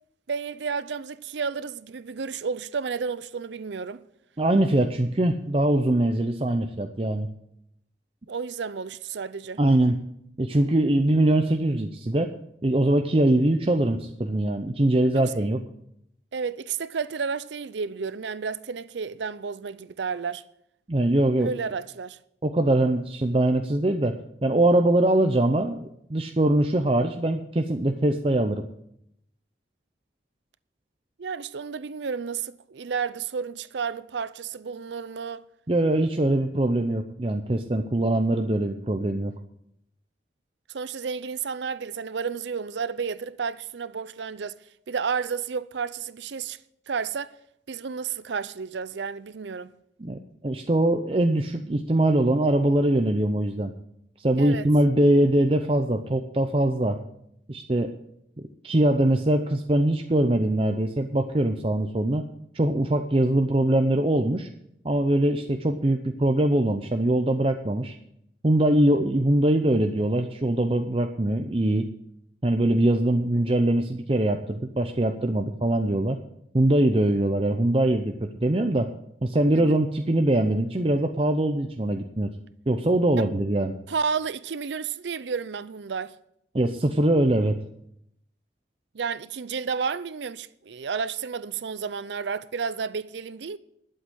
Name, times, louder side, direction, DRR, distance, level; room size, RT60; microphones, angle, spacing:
voice 1, 0.3-4.0 8.3-9.6 15.1-15.5 16.3-20.4 21.4-22.2 31.2-35.4 40.7-44.6 44.9-46.6 46.9-47.3 47.7-49.7 54.4-54.7 79.5-79.8 83.2-83.3 83.9-86.2 88.9-93.6, right 5 dB, 80° right, 0.5 m, -31 dB
voice 2, 4.4-7.3 9.6-10.0 10.4-12.3 12.6-15.6 20.9-21.5 22.4-28.6 35.7-39.3 50.0-53.7 54.2-57.0 57.5-57.9 58.6-62.3 62.5-64.5 64.8-67.9 68.4-71.9 72.4-76.2 76.5-78.9 79.2-82.3 82.7-83.7 86.5-87.6, right 1 dB, 30° right, 0.6 m, -22 dB
12.0 x 7.8 x 7.9 m
head